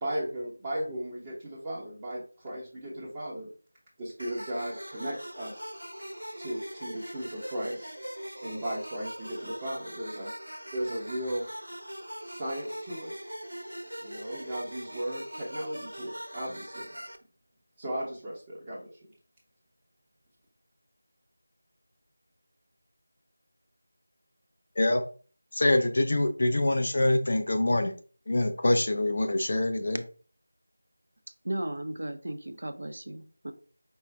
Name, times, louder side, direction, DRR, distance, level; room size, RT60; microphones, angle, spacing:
voice 1, 0.0-3.5 4.0-5.8 6.4-7.9 8.4-10.3 10.7-11.5 12.2-13.2 14.0-17.0 17.8-19.1, right 1 dB, 15° right, -7 dB, 0.8 m, -36 dB
sound 1, 4.2-17.2, equal, 85° right, 0.9 m, -41 dB
voice 2, 25.5-27.9 28.3-30.0, left 1 dB, 45° left, 7 dB, 0.6 m, -25 dB
voice 3, 31.4-33.5, right 1 dB, 55° right, 9 dB, 0.7 m, -35 dB
5.2 x 2.4 x 3.4 m, 0.38 s
figure-of-eight pair, 170°, 0 cm